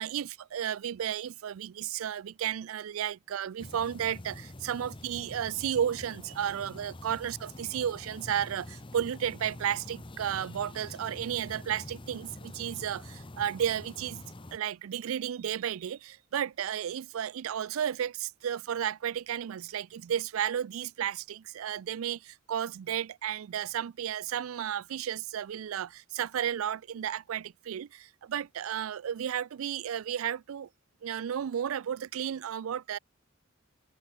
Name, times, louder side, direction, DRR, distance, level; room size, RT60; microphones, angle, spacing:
voice 1, 0.0-14.2 14.5-30.7 31.0-33.0, right 9 dB, 90° right, 0.4 m, -33 dB
sound 1, 3.6-14.6, left 1 dB, 25° left, 1.1 m, -46 dB
head